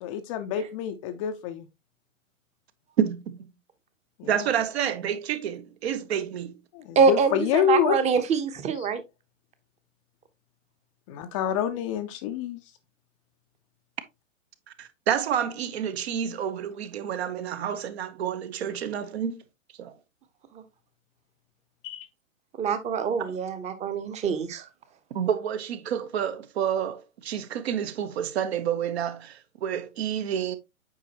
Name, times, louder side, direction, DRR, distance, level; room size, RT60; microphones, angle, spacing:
voice 1, 0.0-1.7 4.2-4.5 6.7-8.0 8.7-8.9 11.1-12.6 21.8-22.1, left 9 dB, 25° left, 0.5 m, -27 dB
voice 2, 3.0-3.5 4.3-6.5 14.8-19.4 19.8-19.9 23.2-23.4 25.1-30.6, right 9 dB, 50° right, 1.0 m, -29 dB
voice 3, 7.0-9.0 22.6-24.6, right 5 dB, 15° right, 0.9 m, -24 dB
8.4 x 5.1 x 2.9 m
figure-of-eight pair, 115°, 40 cm